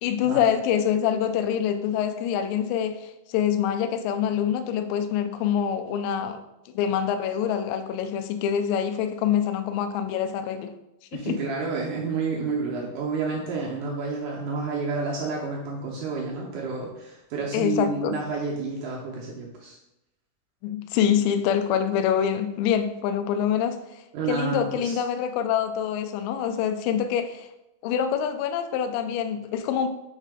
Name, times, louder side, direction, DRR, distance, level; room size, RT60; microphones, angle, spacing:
voice 1, 0.0-6.4 6.7-10.7 11.1-11.4 17.5-18.2 20.6-27.5 27.8-29.9, left 8 dB, 85° left, 8 dB, 1.9 m, -25 dB
voice 2, 11.1-19.8 24.1-25.0, right 4 dB, 80° right, -3 dB, 1.9 m, -30 dB
6.7 x 3.3 x 4.8 m, 0.91 s
omnidirectional pair, 4.5 m